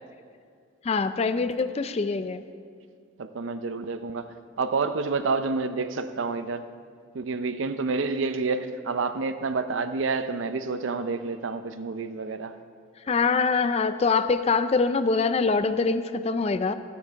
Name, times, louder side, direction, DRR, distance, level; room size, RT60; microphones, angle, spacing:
voice 1, 0.8-2.4 13.1-16.7, left 4 dB, 35° left, 0.4 m, -24 dB
voice 2, 3.2-6.6 7.1-12.5, right 4 dB, 85° right, 0.6 m, -29 dB
13.0 x 8.4 x 4.6 m
head